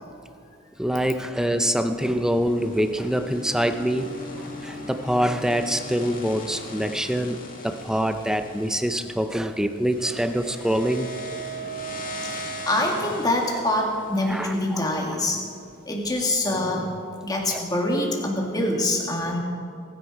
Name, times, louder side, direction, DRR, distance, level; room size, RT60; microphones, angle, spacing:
voice 1, 0.8-7.4 7.6-11.1 14.3-15.1 17.5-17.6, equal, 5° right, 8 dB, 0.6 m, -25 dB
sound 1, 1.3-15.5, equal, 45° left, 2.0 m, -39 dB
voice 2, 12.3-15.5 15.9-16.9 17.2-19.4, left 1 dB, 20° left, 0 dB, 2.1 m, -25 dB
22.0 x 10.0 x 4.7 m, 2.4 s
head